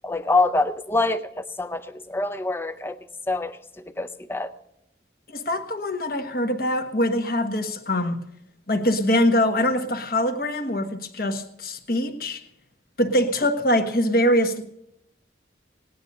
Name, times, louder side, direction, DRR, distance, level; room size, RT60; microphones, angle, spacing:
voice 1, 0.0-3.0 3.3-4.5, left 2 dB, 15° left, 11 dB, 0.5 m, -25 dB
voice 2, 5.3-8.2 8.7-12.4 13.0-14.6, left 1 dB, 50° left, 5 dB, 1.3 m, -23 dB
17.5 x 10.0 x 5.4 m, 0.80 s
head